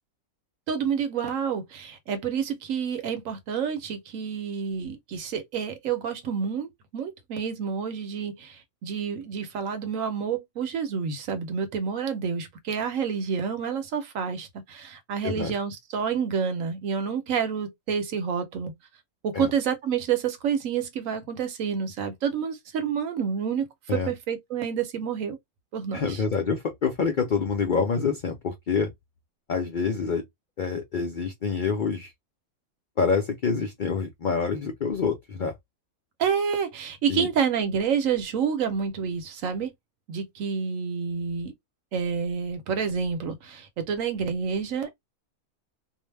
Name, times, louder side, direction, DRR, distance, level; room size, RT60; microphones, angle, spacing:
voice 1, 0.7-18.7 19.2-25.4 25.7-26.2 36.2-39.7 40.1-41.5 41.9-44.9, right 7 dB, 70° right, 1.0 m, -29 dB
voice 2, 25.9-28.9 29.5-30.2 30.6-32.1 33.0-35.5 37.1-37.3, left 5 dB, 70° left, 0.4 m, -26 dB
2.6 x 2.1 x 3.2 m
omnidirectional pair, 1.5 m